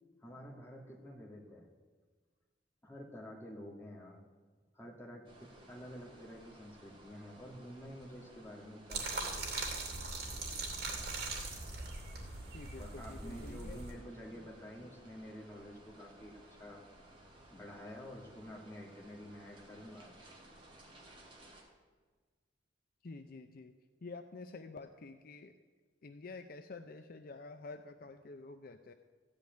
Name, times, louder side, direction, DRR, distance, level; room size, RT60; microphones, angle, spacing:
voice 1, 0.2-1.6 2.8-4.2 4.7-9.7 12.8-16.8 17.5-20.1, equal, 15° left, -2 dB, 2.1 m, -49 dB
sound 1, 5.2-21.6, right 1 dB, 30° right, 2.5 m, -59 dB
sound 2, 8.9-13.9, right 3 dB, 60° right, 2.8 m, -40 dB
voice 2, 12.5-13.8 23.0-23.8 24.0-25.5 26.0-28.9, left 3 dB, 55° left, 7 dB, 0.5 m, -49 dB
14.5 x 5.2 x 9.2 m, 1.4 s
head